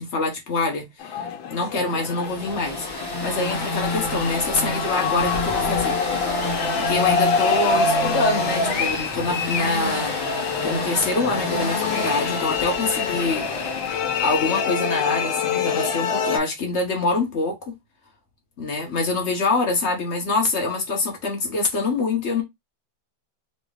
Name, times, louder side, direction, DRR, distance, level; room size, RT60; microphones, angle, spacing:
voice 1, 0.0-2.9 3.2-6.0 6.8-13.9 14.2-17.7 18.6-22.4, left 3 dB, 55° left, 0.7 m, -25 dB
sound 1, 1.0-16.4, left 5 dB, 80° left, 1.5 m, -26 dB
sound 2, 2.0-14.9, left 1 dB, 35° left, 0.4 m, -30 dB
3.1 x 2.8 x 3.3 m
omnidirectional pair, 2.1 m